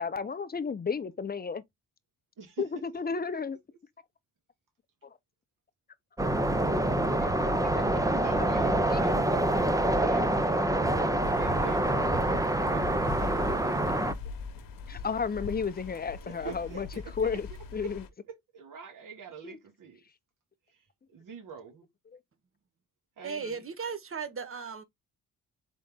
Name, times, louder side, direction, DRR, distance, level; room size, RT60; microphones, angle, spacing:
voice 1, 0.0-1.6 2.6-3.6 7.1-7.9 8.4-8.5 8.9-9.0 14.9-16.9 17.2-18.0 19.4-19.6 22.1-22.2, left 5 dB, 25° left, 0.8 m, -33 dB
sound 1, 6.2-14.1, right 1 dB, 10° right, 0.7 m, -26 dB
voice 2, 7.9-14.2 16.2-17.4 17.8-17.9 18.3-20.0 20.7-21.9 23.2-23.6, right 6 dB, 65° right, 2.3 m, -45 dB
sound 2, 11.2-18.1, left 5 dB, 70° left, 1.2 m, -42 dB
voice 3, 23.2-24.8, right 5 dB, 40° right, 1.3 m, -36 dB
4.1 x 3.6 x 3.6 m
cardioid pair, 70°, 35 cm